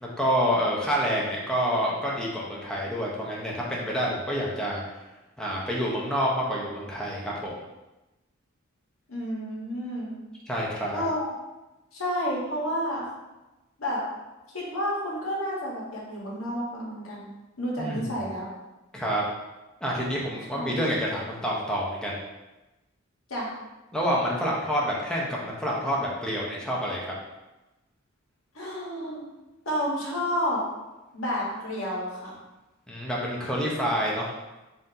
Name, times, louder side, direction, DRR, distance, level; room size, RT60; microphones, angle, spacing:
voice 1, 0.0-4.8 5.4-7.6 10.5-11.0 17.8-18.1 18.9-19.2 19.8-22.2 23.9-27.1 32.9-34.3, equal, 5° left, -4 dB, 0.6 m, -28 dB
voice 2, 9.1-10.1 10.9-11.3 11.9-13.0 13.8-14.0 14.5-17.3 17.6-18.5 20.5-20.7 23.3-23.5 28.5-29.3 29.6-30.6 31.1-32.3, equal, 80° left, -4 dB, 1.2 m, -30 dB
5.6 x 2.6 x 2.7 m, 1.0 s
head